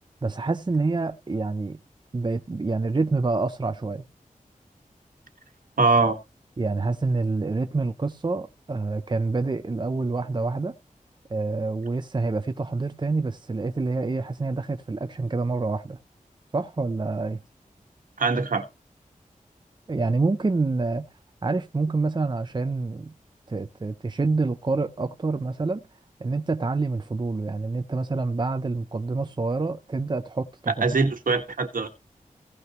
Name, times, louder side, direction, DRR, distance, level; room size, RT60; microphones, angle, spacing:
voice 1, 0.2-1.8 2.1-4.0 6.6-10.7 11.3-16.0 16.5-17.4 19.9-21.1 21.4-23.1 23.5-25.8 26.2-31.1, right 3 dB, 35° right, 0.6 m, -27 dB
voice 2, 5.8-6.2 18.2-18.7 30.8-31.9, right 3 dB, 75° right, 1.6 m, -22 dB
16.5 x 6.2 x 3.0 m
wide cardioid pair, 85°, 14 cm